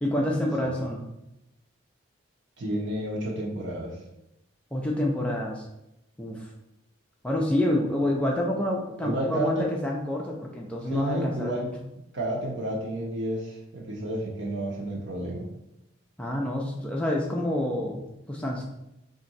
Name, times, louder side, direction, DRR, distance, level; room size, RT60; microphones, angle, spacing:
voice 1, 0.0-1.0 4.7-5.7 6.2-6.5 7.2-11.7 16.2-18.6, left 1 dB, 5° left, -2 dB, 0.4 m, -28 dB
voice 2, 2.6-4.0 9.0-9.7 10.9-11.7 12.1-15.5, right 1 dB, 65° right, -1 dB, 0.9 m, -31 dB
3.6 x 2.5 x 4.1 m, 0.87 s
head